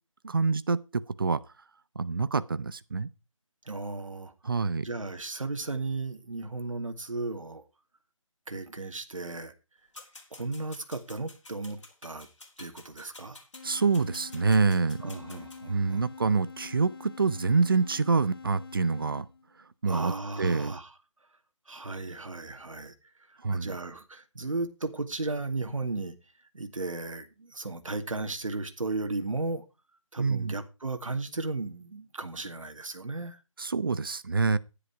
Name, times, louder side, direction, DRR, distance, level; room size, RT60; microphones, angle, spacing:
voice 1, 0.2-1.4 2.0-3.1 4.4-4.9 13.6-15.0 15.7-19.3 19.8-20.7 23.4-23.8 30.2-30.5 33.6-34.6, right 4 dB, 40° right, 0.7 m, -26 dB
voice 2, 3.7-4.3 4.8-7.6 8.5-9.5 10.3-12.3 12.6-13.4 15.0-16.1 19.9-20.9 21.7-22.9 23.3-26.1 26.5-29.6 30.1-33.4, right 3 dB, 70° right, 2.3 m, -35 dB
sound 1, 9.9-15.6, left 3 dB, 60° left, 3.7 m, -51 dB
sound 2, 13.5-19.6, left 5 dB, 45° left, 1.3 m, -46 dB
10.5 x 9.9 x 4.7 m
figure-of-eight pair, 170°, 17 cm